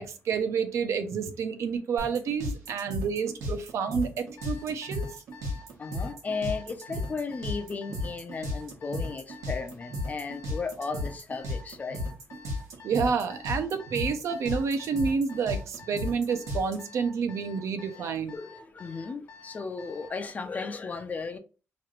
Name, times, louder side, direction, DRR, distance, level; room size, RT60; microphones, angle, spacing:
voice 1, 0.0-5.2 12.8-18.3, right 5 dB, 70° right, 0.5 m, -29 dB
sound 1, 2.0-16.8, left 1 dB, 85° right, 1.1 m, -34 dB
Alarm, 4.4-20.2, left 6 dB, 75° left, 1.2 m, -50 dB
voice 2, 5.8-12.0 17.9-21.4, left 4 dB, 30° left, 0.4 m, -35 dB
3.0 x 2.4 x 3.1 m
cardioid pair, 135°, 5 cm